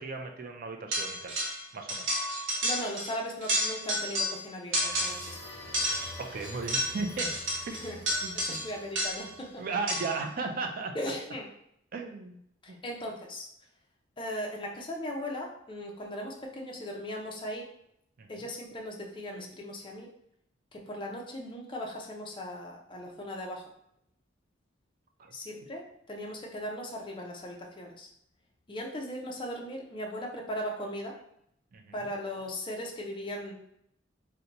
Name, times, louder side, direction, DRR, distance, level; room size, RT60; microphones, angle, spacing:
voice 1, 0.0-1.4 1.7-2.3 6.2-7.3 7.7-7.9 8.2-8.6 9.6-10.9 11.9-12.4 12.7-12.8 18.2-18.3 25.2-25.3 31.7-32.0, right 4 dB, 50° right, 5 dB, 0.4 m, -36 dB
sound 1, 0.9-1.6 1.9-3.1 3.4-4.4 4.7-5.3 5.7-9.4 9.9-10.3, equal, 80° right, 0.8 m, -31 dB
voice 2, 2.6-5.4 7.7-8.0 8.3-9.6 10.9-11.4 12.6-13.5 14.2-17.7 18.3-20.1 20.7-23.7 25.3-28.1 28.7-31.2 31.9-33.5, equal, 25° left, 0 dB, 0.5 m, -38 dB
sound 2, 4.7-10.4, left 2 dB, 65° left, 0.8 m, -48 dB
2.7 x 2.2 x 3.8 m, 0.73 s
head